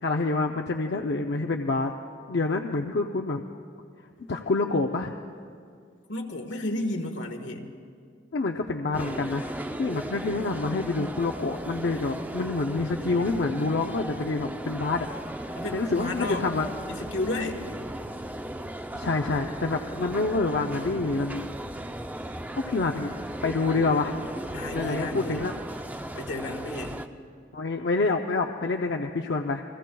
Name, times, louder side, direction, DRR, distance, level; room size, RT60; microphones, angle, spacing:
voice 1, 0.0-1.9 2.3-3.4 4.3-5.2 8.3-9.5 9.8-16.7 18.9-21.5 22.6-23.1 23.4-24.3 24.7-25.5 27.5-29.6, left 3 dB, 65° left, 3 dB, 0.6 m, -27 dB
voice 2, 6.1-7.7 15.6-16.5 16.9-17.6 24.5-25.5 26.1-27.0, left 2 dB, 85° left, 4 dB, 1.5 m, -32 dB
sound 1, 8.9-27.1, right 1 dB, 10° right, 0.5 m, -36 dB
29.5 x 21.5 x 2.3 m, 2.2 s
head